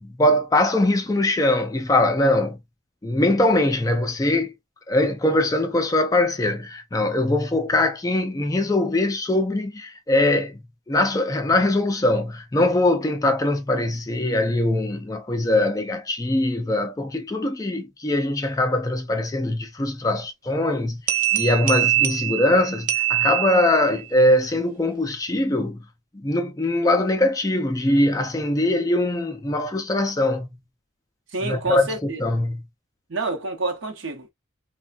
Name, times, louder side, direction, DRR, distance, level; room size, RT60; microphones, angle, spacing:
voice 1, 0.0-2.6 3.0-4.5 4.9-10.6 10.9-25.8 26.1-30.6 31.4-32.6, left 1 dB, 15° left, 0.3 m, -22 dB
sound 1, 21.1-24.0, right 13 dB, 40° right, 0.5 m, -23 dB
voice 2, 31.3-32.2 33.1-34.3, right 3 dB, 70° right, 0.8 m, -28 dB
3.2 x 2.2 x 2.3 m
head